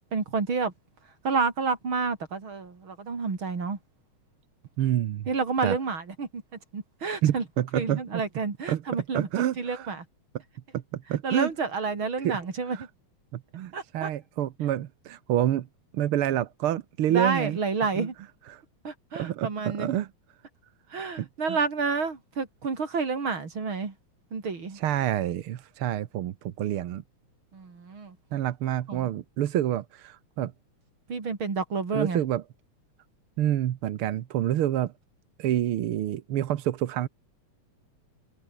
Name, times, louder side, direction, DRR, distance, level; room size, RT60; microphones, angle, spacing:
voice 1, 0.1-0.7 1.2-3.8 5.3-6.4 6.7-7.4 7.7-9.3 9.6-10.0 11.2-12.9 13.7-14.1 17.1-18.1 18.8-20.0 20.9-23.9 24.3-24.8 27.5-28.2 28.9-29.1 31.1-32.2, right 4 dB, 45° right, 4.3 m, -29 dB
voice 2, 4.8-5.2 5.6-5.8 7.2-8.0 8.7-8.8 9.1-9.9 11.1-11.5 12.2-12.4 12.7-12.9 13.3-15.7 15.9-17.6 17.9-18.1 18.5-18.6 19.1-20.1 21.2-21.6 24.7-27.0 28.3-30.5 31.9-32.4 33.4-34.9 35.4-37.1, right 12 dB, 60° right, 1.6 m, -28 dB
omnidirectional pair, 3.3 m